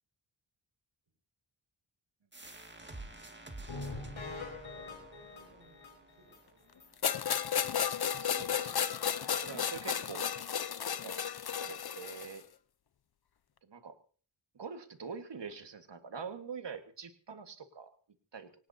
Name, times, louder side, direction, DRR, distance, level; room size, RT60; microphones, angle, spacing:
sound 1, 2.3-7.7, right 2 dB, 20° right, 2.2 m, -51 dB
sound 2, 3.7-6.4 6.8-6.9 7.3-7.4 7.8-7.9, left 3 dB, 70° left, 3.4 m, -44 dB
voice 1, 4.4-6.7, right 3 dB, 80° right, -1 dB, 5.6 m, -62 dB
sound 3, 7.0-12.4, left 8 dB, 50° left, 0.8 m, -33 dB
voice 2, 8.2-8.8 9.0-10.3 11.0-11.2 11.6-12.4 13.6-14.0 14.6-17.9 18.3-18.5, right 6 dB, 60° right, 8 dB, 1.8 m, -45 dB
24.5 x 18.0 x 2.8 m, 0.41 s
cardioid pair, 50°, 48 cm